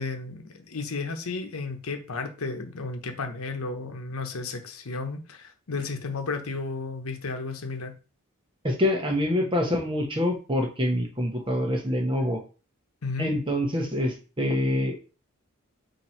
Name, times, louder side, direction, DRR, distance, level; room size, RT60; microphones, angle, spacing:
voice 1, 0.0-7.9 13.0-13.3, left 3 dB, 80° left, 0.9 m, -33 dB
voice 2, 8.6-12.4 13.2-15.0, left 1 dB, 25° right, 0.9 m, -26 dB
4.3 x 2.8 x 4.3 m
head